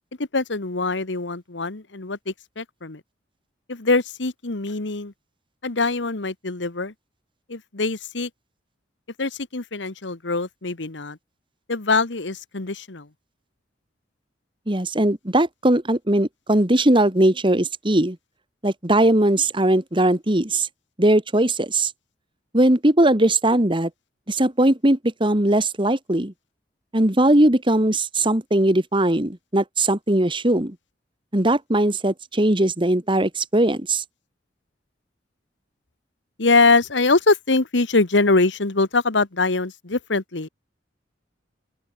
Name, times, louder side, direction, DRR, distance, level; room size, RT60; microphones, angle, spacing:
voice 1, 0.3-3.0 3.7-5.1 5.6-6.9 7.5-8.3 9.2-11.2 11.7-13.1 36.4-40.5, left 3 dB, 80° left, 1.5 m, -23 dB
voice 2, 14.7-18.2 18.6-20.7 21.0-21.9 22.5-23.9 24.3-26.3 26.9-30.8 31.3-34.0, right 1 dB, 25° right, 2.2 m, -19 dB
open air
head